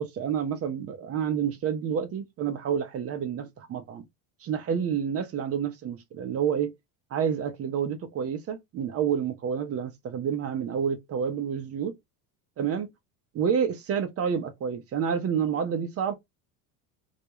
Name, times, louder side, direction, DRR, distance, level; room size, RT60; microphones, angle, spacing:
voice 1, 0.0-4.0 4.4-6.7 7.1-12.0 12.6-12.9 13.3-16.1, right 7 dB, 35° right, 0.5 m, -29 dB
2.3 x 2.1 x 2.8 m
supercardioid pair, 105°, 45 cm